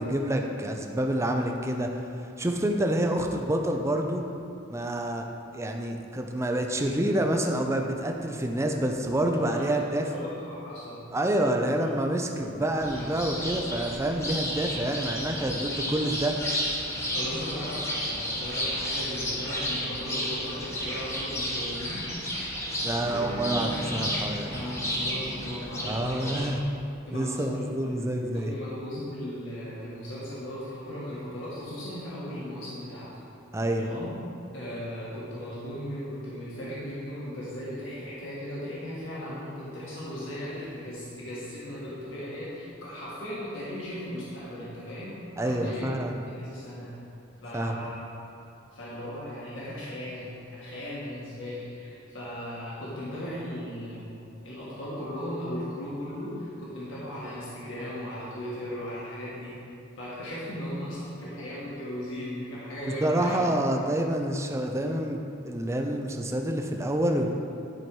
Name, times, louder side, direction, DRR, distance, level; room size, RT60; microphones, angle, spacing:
voice 1, 0.0-2.0 2.4-4.2 4.7-5.3 5.5-10.0 11.1-16.4 22.8-24.5 25.8-26.6 27.1-28.5 33.5-33.9 45.4-46.1 47.5-47.9 63.0-65.2 65.4-67.4, right 1 dB, 15° right, 3 dB, 0.5 m, -28 dB
voice 2, 9.3-11.1 11.8-12.5 17.1-22.1 24.5-26.4 27.1-27.9 28.3-33.2 33.8-34.1 34.5-45.8 46.2-47.0 47.4-48.0 48.7-54.2 54.4-59.7 60.0-63.4 63.7-63.8, equal, 70° left, -8 dB, 1.7 m, -37 dB
sound 1, 12.8-26.6, equal, 15° left, 1.2 m, -32 dB
sound 2, 22.9-28.2, right 1 dB, 75° right, 2.0 m, -39 dB
10.5 x 4.5 x 4.6 m, 2.6 s
head